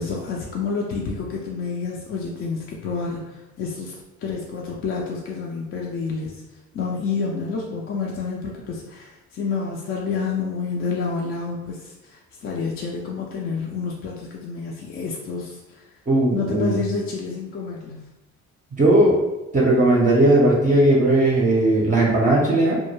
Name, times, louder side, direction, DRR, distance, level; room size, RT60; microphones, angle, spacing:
voice 1, 0.0-6.4 6.7-15.9 16.3-18.1, left 4 dB, 45° left, -2 dB, 0.4 m, -29 dB
voice 2, 16.1-16.8 18.8-19.2 19.5-22.8, right 1 dB, 25° right, -5 dB, 0.5 m, -17 dB
2.2 x 2.0 x 3.0 m, 1.0 s
cardioid pair, 90°, 30 cm